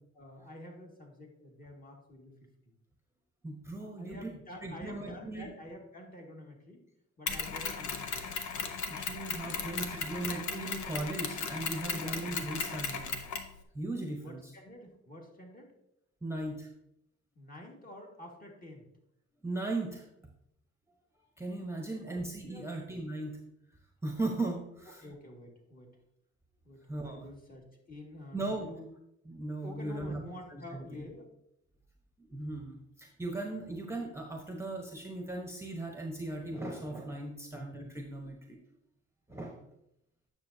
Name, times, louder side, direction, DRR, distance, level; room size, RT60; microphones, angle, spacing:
voice 1, 0.2-2.3 3.8-6.9 7.2-8.8 9.7-10.3 12.0-12.2 14.2-15.7 17.4-18.9 21.8-22.2 22.5-22.7 25.0-26.0 26.7-28.9 29.6-31.3 36.6-36.8 37.3-37.4 39.3-39.7, left 1 dB, 30° left, -1 dB, 2.0 m, -49 dB
voice 2, 3.4-4.3 4.6-5.5 8.9-13.2 13.7-14.5 16.2-16.7 19.4-20.1 21.4-23.4 24.0-25.0 26.9-27.3 28.3-28.7 29.3-30.2 30.5-31.1 32.2-38.6 39.3-39.6, right 2 dB, 10° right, 2 dB, 1.0 m, -38 dB
Mechanisms, 7.3-13.5, left 5 dB, 70° left, 1.0 m, -36 dB
9.2 x 6.4 x 2.8 m, 0.79 s
cardioid pair, 90°, 30 cm